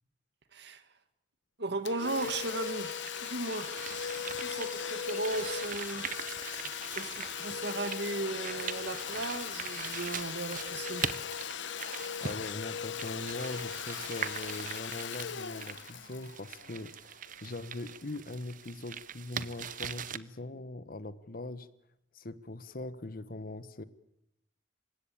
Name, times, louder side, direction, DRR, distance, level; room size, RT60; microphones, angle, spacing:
voice 1, 0.5-0.8 1.6-6.1 6.9-11.1, right 2 dB, 60° right, 11 dB, 1.9 m, -36 dB
Domestic sounds home sounds, 1.9-17.3, left 8 dB, 70° left, 0.9 m, -39 dB
sound 1, 2.2-20.2, right 8 dB, 45° right, 0.8 m, -42 dB
voice 2, 12.2-21.7 22.1-23.8, left 2 dB, 50° left, 15 dB, 1.1 m, -41 dB
27.5 x 16.5 x 8.6 m, 0.81 s
head